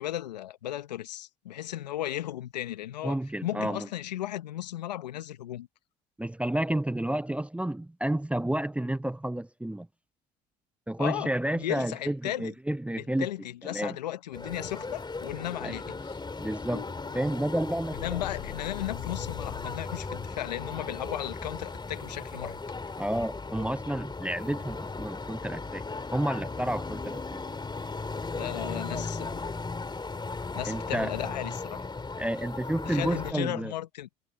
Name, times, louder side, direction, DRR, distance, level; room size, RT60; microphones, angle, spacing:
voice 1, 0.0-5.7 11.0-12.5 13.0-16.2 18.0-22.6 28.3-29.5 30.5-31.8 32.8-34.1, left 13 dB, 90° left, 1.3 m, -35 dB
voice 2, 3.0-3.9 6.2-9.9 10.9-13.3 13.7-14.0 15.6-15.8 16.4-18.2 23.0-25.8 26.1-27.6 30.6-31.1 32.2-33.7, right 1 dB, 5° right, 0.5 m, -31 dB
sound 1, 14.3-33.3, left 3 dB, 20° left, 3.3 m, -37 dB
sound 2, 16.7-20.8, left 18 dB, 65° left, 4.7 m, -42 dB
hypercardioid pair, 60°, 21 cm